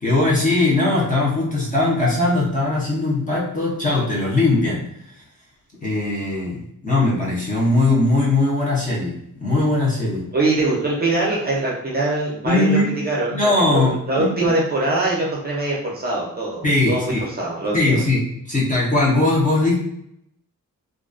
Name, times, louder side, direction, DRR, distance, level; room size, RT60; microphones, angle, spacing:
voice 1, 0.0-4.9 5.8-10.2 12.4-12.9 13.3-14.5 16.6-17.2 17.7-19.8, left 2 dB, 25° left, -5 dB, 0.5 m, -20 dB
voice 2, 10.3-18.0, right 2 dB, 30° right, -4 dB, 0.5 m, -23 dB
2.3 x 2.2 x 2.4 m, 0.75 s
wide cardioid pair, 160°, 34 cm